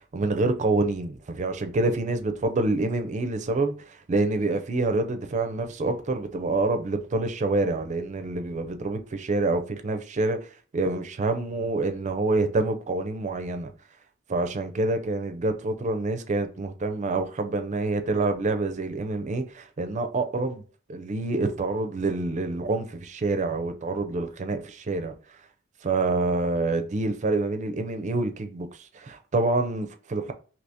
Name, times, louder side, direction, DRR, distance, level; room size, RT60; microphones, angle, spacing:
voice 1, 0.0-10.4 10.7-13.7 14.3-20.6 20.9-25.1 25.8-28.7 28.9-30.3, right 2 dB, 35° right, 0.4 m, -27 dB
2.8 x 2.7 x 3.4 m
head